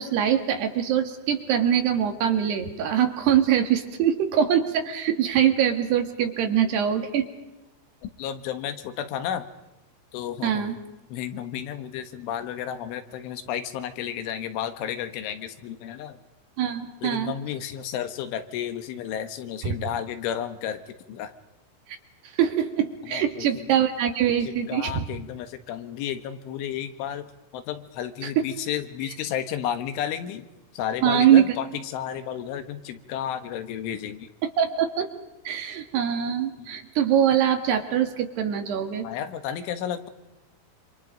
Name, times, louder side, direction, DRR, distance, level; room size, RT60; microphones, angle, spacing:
voice 1, 0.0-7.3 10.4-10.8 16.6-17.3 19.6-19.8 21.9-22.0 22.4-25.1 28.2-28.4 31.0-31.4 34.6-35.1 35.5-39.1, right 9 dB, 65° right, 6 dB, 3.7 m, -23 dB
voice 2, 8.0-9.5 10.1-10.7 11.1-16.2 17.0-21.3 23.0-23.7 24.4-27.3 27.5-30.4 30.7-34.3 36.6-36.8 39.0-40.1, left 9 dB, 80° left, 9 dB, 3.9 m, -32 dB
28.0 x 27.0 x 5.2 m, 1.0 s
omnidirectional pair, 5.6 m